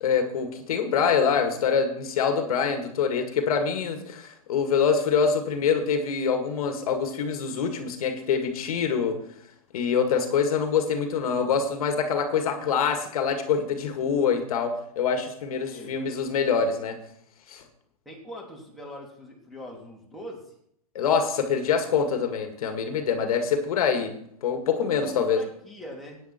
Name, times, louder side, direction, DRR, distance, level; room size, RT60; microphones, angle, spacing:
voice 1, 0.0-9.2 9.7-17.0 17.5-17.6 20.9-25.4, left 6 dB, 70° left, 6 dB, 2.0 m, -25 dB
voice 2, 15.6-16.0 18.0-20.5 24.9-26.2, equal, ahead, -4 dB, 3.2 m, -42 dB
15.0 x 9.6 x 4.5 m, 0.71 s
hypercardioid pair, 140°, 19 cm